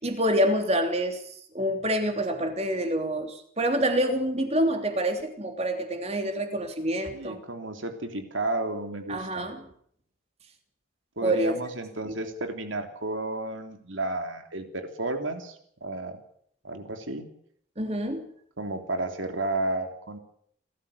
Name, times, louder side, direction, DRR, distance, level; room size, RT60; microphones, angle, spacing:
voice 1, 0.0-7.4 9.1-9.7 11.2-11.5 12.0-12.1 17.8-18.3, right 1 dB, 35° right, 3.3 m, -27 dB
voice 2, 7.1-9.5 11.2-16.2 16.6-17.2 18.6-20.2, right 2 dB, 75° right, 3.2 m, -32 dB
29.5 x 14.0 x 6.8 m
head